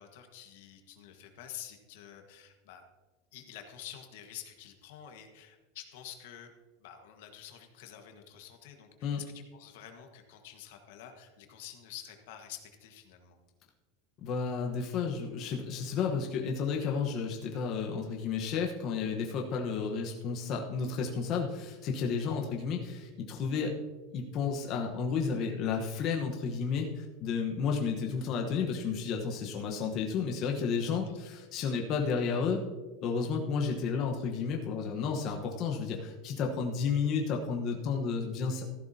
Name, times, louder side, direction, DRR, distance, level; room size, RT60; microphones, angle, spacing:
voice 1, 0.0-2.8 3.3-6.5 6.8-13.4 22.2-22.4 31.0-31.4, left 10 dB, 70° left, 5 dB, 1.5 m, -48 dB
voice 2, 14.2-23.8 24.1-32.6 33.0-38.6, left 5 dB, 35° left, 1 dB, 1.1 m, -32 dB
14.5 x 11.5 x 2.8 m, 1.2 s
supercardioid pair, 160°, 0 cm